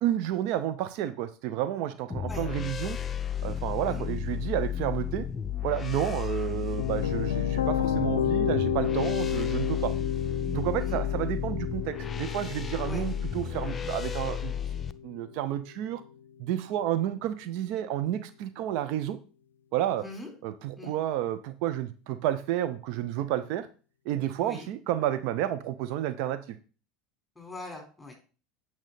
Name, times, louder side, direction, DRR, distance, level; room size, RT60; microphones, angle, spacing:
voice 1, 0.0-3.0 3.4-5.3 5.6-9.9 10.5-14.5 15.0-16.0 16.4-19.2 19.7-20.0 20.4-23.7 24.0-26.6, right 12 dB, 60° right, 12 dB, 0.6 m, -30 dB
sound 1, 2.1-14.9, left 8 dB, 30° left, 0.6 m, -33 dB
sound 2, 6.4-15.5, left 8 dB, 80° left, 0.5 m, -31 dB
voice 2, 27.4-28.1, left 2 dB, 10° left, 2 dB, 4.2 m, -41 dB
8.9 x 6.0 x 4.1 m, 0.36 s
hypercardioid pair, 75°, 0 cm